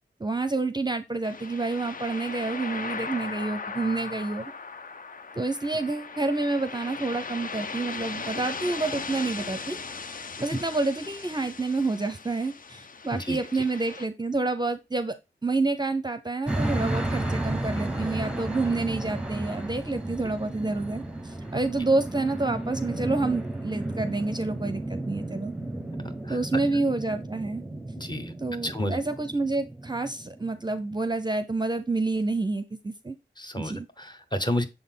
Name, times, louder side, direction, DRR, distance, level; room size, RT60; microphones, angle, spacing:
voice 1, 0.2-4.5 5.4-9.8 10.4-15.1 15.4-25.5 26.3-27.6 28.4-33.2 33.6-33.9, right 3 dB, 20° right, 10 dB, 0.6 m, -28 dB
sound 1, 1.2-14.1, left 4 dB, 45° left, 0.5 m, -38 dB
sound 2, 16.5-30.7, right 1 dB, 5° right, 1.0 m, -33 dB
voice 2, 28.0-28.3 28.6-29.0 33.4-34.6, left 1 dB, 20° left, 6 dB, 1.0 m, -30 dB
6.8 x 3.9 x 3.7 m, 0.25 s
cardioid pair, 55°, 20 cm